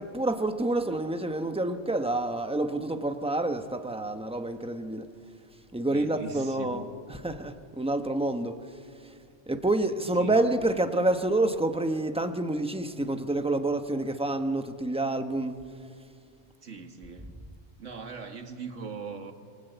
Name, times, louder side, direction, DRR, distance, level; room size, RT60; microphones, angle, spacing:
voice 1, 0.0-5.1 5.7-8.6 9.5-15.5, right 2 dB, 5° right, 1.1 m, -28 dB
voice 2, 5.9-6.9 10.1-10.6 16.6-17.3 17.8-19.3, right 5 dB, 70° right, 2.0 m, -40 dB
27.5 x 24.0 x 8.1 m
omnidirectional pair, 1.3 m